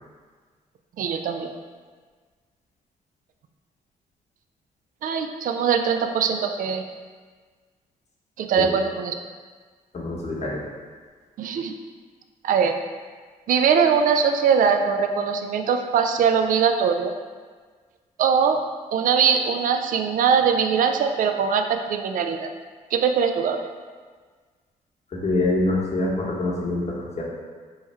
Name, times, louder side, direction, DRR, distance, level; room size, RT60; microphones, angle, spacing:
voice 1, 1.0-1.6 5.0-6.8 8.4-9.1 11.4-11.7 12.4-12.8 13.5-17.1 18.2-18.6 18.9-22.5 22.9-23.7, right 6 dB, 65° right, 6 dB, 0.4 m, -21 dB
voice 2, 9.9-10.6 25.1-27.2, left 2 dB, 45° left, -3 dB, 0.9 m, -25 dB
3.1 x 2.3 x 4.2 m, 1.5 s
supercardioid pair, 65°, 15 cm